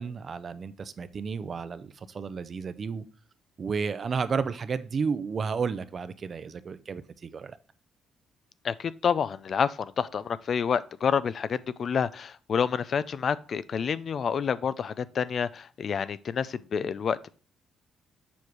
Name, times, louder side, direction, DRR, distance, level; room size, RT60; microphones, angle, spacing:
voice 1, 0.0-3.0 3.6-7.6, right 5 dB, 45° right, 0.6 m, -32 dB
voice 2, 8.6-17.3, left 7 dB, 55° left, 0.4 m, -28 dB
7.2 x 4.5 x 4.7 m
cardioid pair, 90°, 0 cm